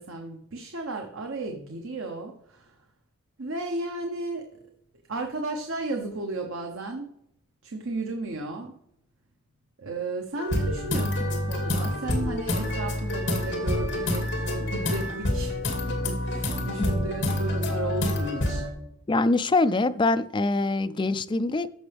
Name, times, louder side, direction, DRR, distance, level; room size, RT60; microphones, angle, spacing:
voice 1, 0.0-2.8 3.4-4.4 5.1-7.1 7.6-8.8 9.8-15.6 15.9-18.7, right 2 dB, 70° right, 1.0 m, -34 dB
sound 1, 10.4-18.7, left 1 dB, 60° left, 2.3 m, -28 dB
voice 2, 19.1-21.7, left 2 dB, 20° left, 0.4 m, -24 dB
14.5 x 5.9 x 3.5 m
head